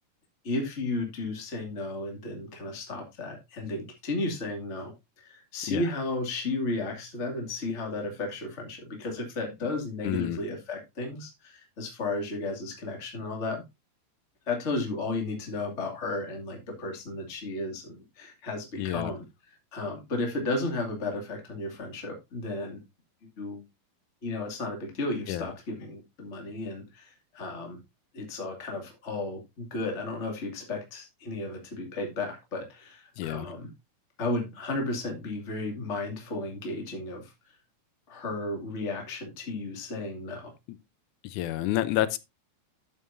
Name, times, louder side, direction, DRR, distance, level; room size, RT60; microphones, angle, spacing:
voice 1, 0.4-13.6 14.5-22.8 23.4-23.6 24.2-27.8 28.1-33.7 34.2-37.3 38.1-40.5, left 2 dB, 20° left, 2.2 m, -34 dB
voice 2, 10.1-10.4 18.8-19.1 25.3-25.5 33.2-33.5 41.2-42.2, left 13 dB, 80° left, 1.8 m, -29 dB
12.5 x 7.3 x 2.7 m
omnidirectional pair, 4.2 m